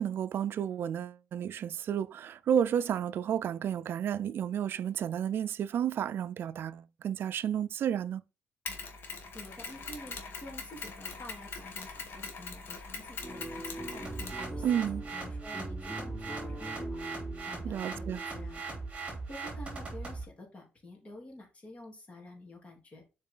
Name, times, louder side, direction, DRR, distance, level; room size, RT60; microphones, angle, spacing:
voice 1, 0.0-8.2 14.6-15.0 17.6-18.2, right 9 dB, 55° right, 0.5 m, -31 dB
Mechanisms, 8.7-15.0, left 4 dB, 55° left, 1.9 m, -42 dB
voice 2, 9.3-14.8 15.1-17.1 17.4-18.7 19.3-23.0, left 1 dB, 30° left, 3.2 m, -49 dB
sound 1, 13.2-19.1, right 1 dB, 10° left, 4.6 m, -43 dB
sound 2, 14.0-20.2, right 3 dB, 25° right, 3.3 m, -39 dB
7.4 x 4.7 x 3.9 m
cardioid pair, 130°, 4 cm